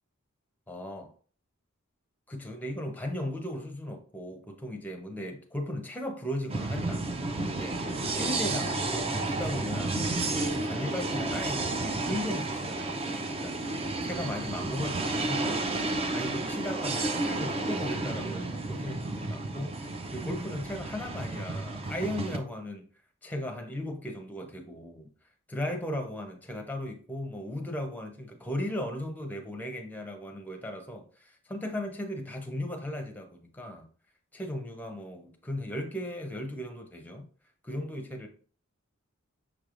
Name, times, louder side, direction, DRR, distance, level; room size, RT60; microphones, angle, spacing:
voice 1, 0.7-1.1 2.3-15.6 15.9-19.7 20.1-22.9 23.2-25.1 25.5-33.8 34.3-37.2 37.6-38.3, left 1 dB, 10° left, 0.7 m, -37 dB
sound 1, 6.5-22.4, right 2 dB, 30° right, 0.4 m, -32 dB
6.1 x 3.3 x 2.4 m
head